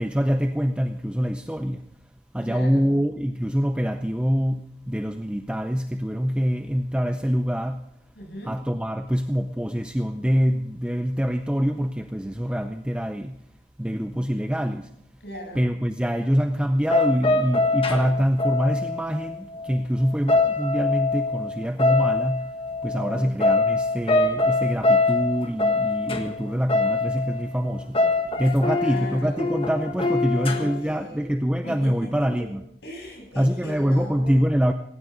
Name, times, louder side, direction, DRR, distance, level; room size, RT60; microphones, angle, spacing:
voice 1, 0.0-1.9 2.3-7.9 8.5-13.4 13.8-14.9 15.5-22.5 22.8-28.0 28.4-32.6 33.4-34.7, equal, 5° right, 7 dB, 0.5 m, -25 dB
voice 2, 2.4-2.9 8.1-8.5 15.2-15.7 22.9-23.3 28.6-29.7 30.3-31.3 31.6-32.5 32.8-34.5, equal, 70° left, 0 dB, 7.3 m, -38 dB
sound 1, 16.9-19.8 20.1-27.5 27.7-30.8, left 3 dB, 30° left, 1.6 m, -24 dB
18.5 x 17.5 x 3.9 m, 0.75 s
head